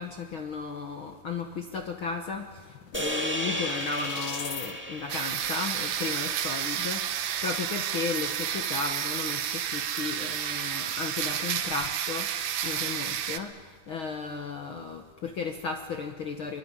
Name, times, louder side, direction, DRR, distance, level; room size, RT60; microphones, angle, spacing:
voice 1, 0.0-16.6, left 5 dB, 60° left, 5 dB, 1.3 m, -35 dB
sound 1, 2.2-4.7, left 7 dB, 80° left, 1.0 m, -41 dB
sound 2, 2.9-7.3, equal, 5° right, 1.3 m, -35 dB
sound 3, 5.1-13.4, right 9 dB, 65° right, 2.0 m, -31 dB
23.5 x 22.5 x 9.8 m, 1.5 s
omnidirectional pair, 4.0 m